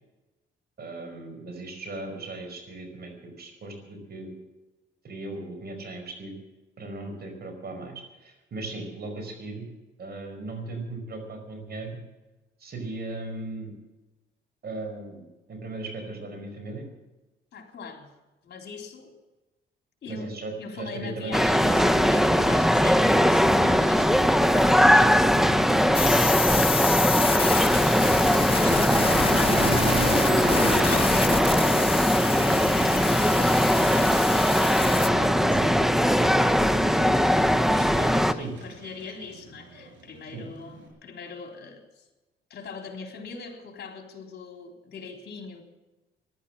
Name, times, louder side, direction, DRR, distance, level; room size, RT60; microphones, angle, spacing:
voice 1, 0.8-4.3 5.0-6.3 6.8-9.7 10.0-12.0 12.6-13.7 14.6-15.2 15.5-16.8 20.1-21.7 38.3-38.5 40.3-40.4, right 2 dB, 55° right, 5 dB, 5.1 m, -37 dB
voice 2, 17.5-18.1 18.4-19.1 20.0-35.6 37.7-42.0 42.5-45.6, left 4 dB, 55° left, 3 dB, 3.7 m, -42 dB
sound 1, 21.3-38.3, equal, ahead, 0.8 m, -20 dB
sound 2, 25.9-35.1, left 6 dB, 30° left, 0.6 m, -29 dB
Motor vehicle (road), 28.2-40.9, right 3 dB, 80° right, 5.6 m, -36 dB
14.5 x 11.5 x 7.6 m, 1.1 s
cardioid pair, 90°, 20 cm